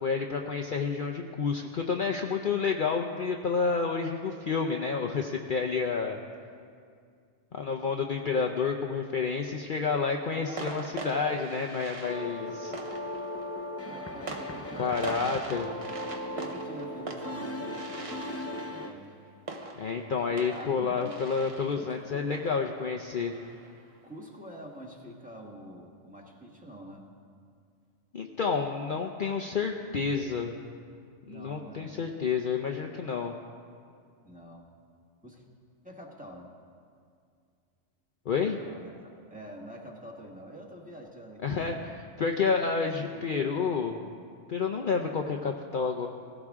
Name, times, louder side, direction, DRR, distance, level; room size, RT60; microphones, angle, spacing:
voice 1, 0.0-6.2 7.5-12.7 14.8-15.7 19.8-23.3 28.1-30.5 31.3-33.3 38.3-38.6 41.4-41.9 42.2-44.0 44.5-46.1, left 5 dB, 50° left, 2 dB, 0.8 m, -29 dB
sound 1, 9.1-9.7 10.6-24.0, right 2 dB, 30° right, 0.9 m, -44 dB
voice 2, 10.3-11.4 13.8-15.3 15.7-15.8 16.4-19.1 20.2-21.2 21.7-22.3 24.0-27.1 31.3-32.0 34.2-34.7 35.2-35.5 35.8-36.5 38.6-41.9 42.8-43.7, equal, 5° right, -2 dB, 1.5 m, -46 dB
sound 2, 12.1-18.9, left 1 dB, 15° left, 0.6 m, -37 dB
17.0 x 16.5 x 3.6 m, 2.2 s
omnidirectional pair, 1.2 m